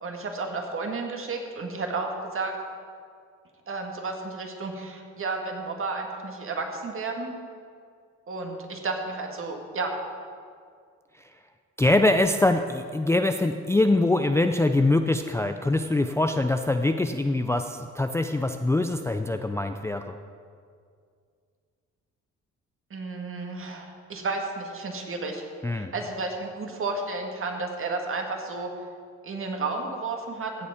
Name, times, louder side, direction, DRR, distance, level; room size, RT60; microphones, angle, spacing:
voice 1, 0.0-2.6 3.7-7.3 8.3-10.0 22.9-25.4 25.7-28.7 29.2-30.7, right 3 dB, 45° right, 3 dB, 1.9 m, -32 dB
voice 2, 11.8-20.2 25.6-25.9, left 2 dB, 10° left, 7 dB, 0.4 m, -23 dB
15.5 x 7.0 x 5.0 m, 2.2 s
cardioid pair, 90°, 30 cm